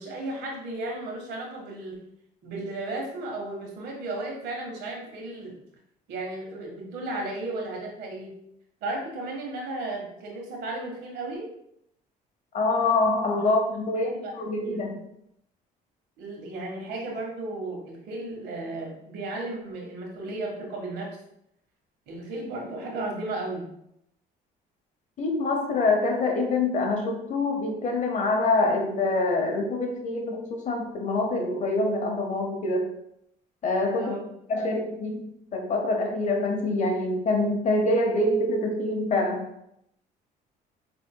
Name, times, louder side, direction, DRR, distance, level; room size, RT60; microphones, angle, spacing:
voice 1, 0.0-2.0 2.4-5.5 6.1-8.3 8.8-11.5 13.4-13.5 13.9-14.3 14.6-15.0 16.2-21.2 22.1-23.7 25.7-25.8 34.0-34.2, right 2 dB, 80° right, 0 dB, 1.5 m, -34 dB
voice 2, 12.5-15.1 25.2-33.0 33.6-34.2 34.5-39.5, left 2 dB, 45° left, 3 dB, 0.9 m, -25 dB
5.6 x 3.8 x 2.2 m, 0.77 s
cardioid pair, 110°, 17 cm